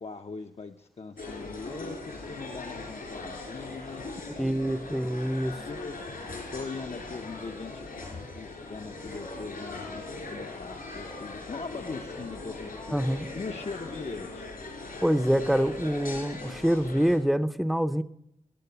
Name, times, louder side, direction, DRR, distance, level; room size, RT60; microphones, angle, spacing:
voice 1, 0.0-4.5 4.9-5.0 5.7-6.1 6.5-7.9 8.3-13.0 13.4-14.5, left 4 dB, 45° left, 5 dB, 0.6 m, -40 dB
sound 1, 1.2-17.2, left 2 dB, 80° left, 3.9 m, -40 dB
voice 2, 4.4-5.6 12.9-13.3 15.0-18.0, equal, ahead, 12 dB, 0.6 m, -26 dB
19.0 x 8.6 x 6.8 m, 0.79 s
wide cardioid pair, 90°, 14 cm